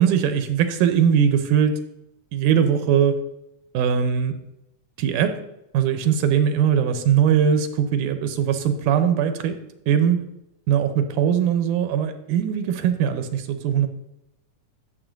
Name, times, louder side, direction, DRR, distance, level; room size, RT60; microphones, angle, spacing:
voice 1, 0.0-1.8 2.3-3.2 3.7-4.3 5.0-5.3 5.7-9.6 9.9-10.2 10.7-13.9, right 8 dB, 90° right, 8 dB, 2.2 m, -20 dB
12.0 x 6.9 x 2.6 m, 0.83 s
omnidirectional pair, 3.7 m